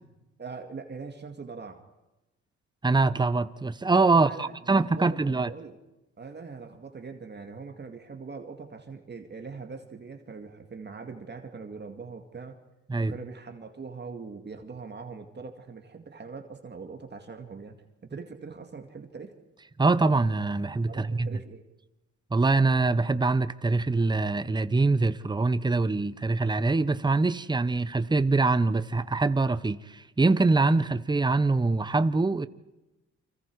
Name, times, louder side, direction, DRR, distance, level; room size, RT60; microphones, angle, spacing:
voice 1, 0.4-1.8 4.1-5.8 6.2-12.6 13.0-17.8 18.0-19.4 20.9-21.6, right 4 dB, 35° right, 2.2 m, -42 dB
voice 2, 2.8-5.5 12.9-13.1 19.8-21.3 22.3-32.5, right 3 dB, 15° right, 0.9 m, -24 dB
29.5 x 25.0 x 4.8 m
cardioid pair, 90°, 30 cm